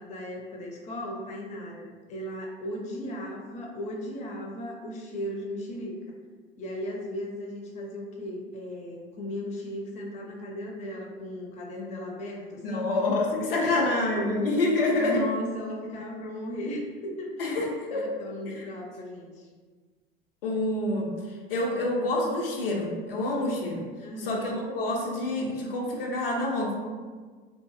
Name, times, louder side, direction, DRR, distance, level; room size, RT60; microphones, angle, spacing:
voice 1, 0.0-6.0 6.6-12.9 13.6-14.5 15.0-17.5 17.9-19.5 24.0-24.5, equal, 25° left, -1 dB, 0.5 m, -36 dB
voice 2, 12.6-15.3 17.4-18.1 18.5-18.7 20.4-23.9 24.2-26.8, left 2 dB, 75° left, -1 dB, 0.6 m, -27 dB
2.7 x 2.4 x 2.3 m, 1.5 s
figure-of-eight pair, 70°, 29 cm